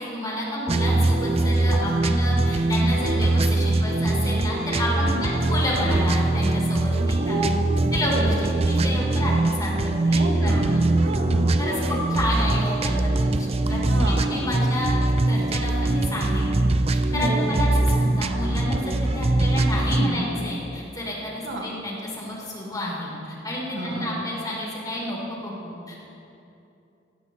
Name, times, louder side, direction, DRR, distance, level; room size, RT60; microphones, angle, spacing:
voice 1, 0.0-7.4 7.9-10.9 11.6-11.8 12.1-13.8 14.0-14.9 15.2-26.1, left 1 dB, 20° left, -5 dB, 3.7 m, -30 dB
sound 1, 0.7-20.1, right 2 dB, 35° right, 0.5 m, -22 dB
voice 2, 5.0-5.5 7.0-8.7 10.2-10.7 11.0-11.5 11.8-12.0 13.7-14.4 17.1-17.9 19.9-20.3 21.4-21.7 23.7-24.1, right 1 dB, 85° right, 0 dB, 1.9 m, -30 dB
16.0 x 15.5 x 3.1 m, 2.7 s
head